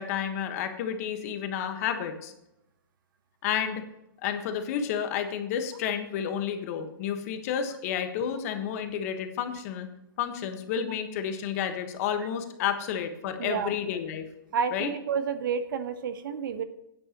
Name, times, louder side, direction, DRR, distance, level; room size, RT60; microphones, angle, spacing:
voice 1, 0.0-2.3 3.4-3.8 4.2-9.9 10.2-14.3 14.7-14.9, left 8 dB, 45° left, 7 dB, 1.4 m, -31 dB
voice 2, 13.4-13.7 14.5-16.6, right 6 dB, 65° right, 10 dB, 1.2 m, -30 dB
13.0 x 9.8 x 3.0 m, 0.86 s
hypercardioid pair, 155°, 12 cm